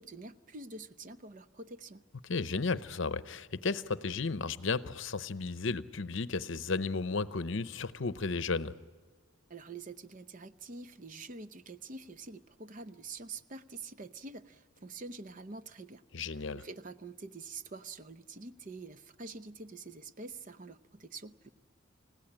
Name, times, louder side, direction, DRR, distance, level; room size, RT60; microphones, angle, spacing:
voice 1, 0.0-2.1 9.5-16.0 16.3-21.5, right 3 dB, 40° right, 12 dB, 0.7 m, -46 dB
voice 2, 2.2-8.7 16.1-16.7, left 4 dB, 60° left, 15 dB, 0.8 m, -34 dB
29.0 x 16.0 x 8.7 m, 1.5 s
head